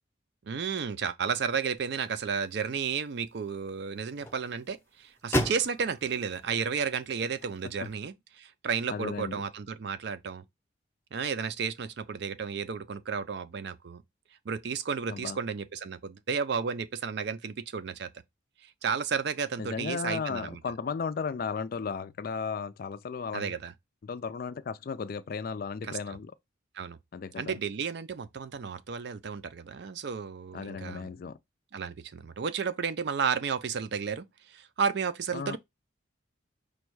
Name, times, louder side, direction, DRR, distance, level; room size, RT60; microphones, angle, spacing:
voice 1, 0.5-10.4 11.1-14.0 14.5-18.1 18.6-20.6 23.3-23.7 25.9-26.0 26.7-27.0 27.4-31.1 31.7-35.6, right 6 dB, 55° right, 0.4 m, -32 dB
sound 1, 1.8-7.9, equal, 10° left, 0.6 m, -38 dB
voice 2, 8.9-9.4 15.1-15.4 19.6-23.6 24.0-26.3 27.1-27.6 30.5-31.4 35.3-35.6, left 5 dB, 45° left, 0.3 m, -35 dB
5.1 x 2.3 x 4.5 m
head